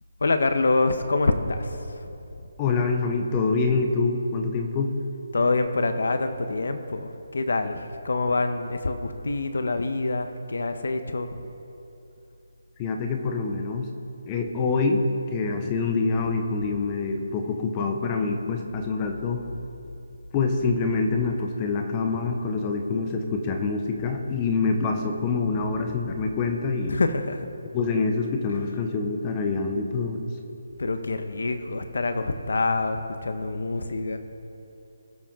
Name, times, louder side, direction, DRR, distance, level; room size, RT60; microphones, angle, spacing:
voice 1, 0.2-1.8 5.3-11.3 26.9-27.5 30.8-34.2, left 3 dB, 70° left, 8 dB, 0.9 m, -26 dB
voice 2, 2.6-4.9 12.8-13.9 14.3-19.4 20.3-27.0 27.7-30.2, left 4 dB, 15° left, 4 dB, 0.7 m, -26 dB
20.5 x 7.3 x 3.7 m, 2.9 s
hypercardioid pair, 170°, 0 cm